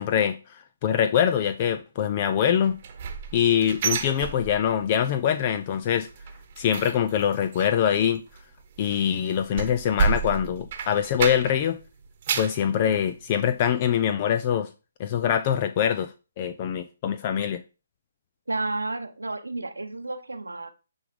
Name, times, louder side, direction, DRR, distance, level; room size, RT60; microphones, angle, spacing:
voice 1, 0.0-2.7 3.3-6.1 6.6-8.2 8.8-11.8 12.4-14.7 15.0-16.1 16.4-17.6, left 9 dB, 35° left, 0.4 m, -24 dB
sound 1, 2.6-5.0 5.3-5.6 5.9-11.7 12.0-12.6 13.1-13.2 13.7-13.8, right 5 dB, 40° right, 1.1 m, -31 dB
voice 2, 18.5-20.7, right 2 dB, 90° right, 0.9 m, -31 dB
9.5 x 3.5 x 3.7 m
figure-of-eight pair, 140°, 0 cm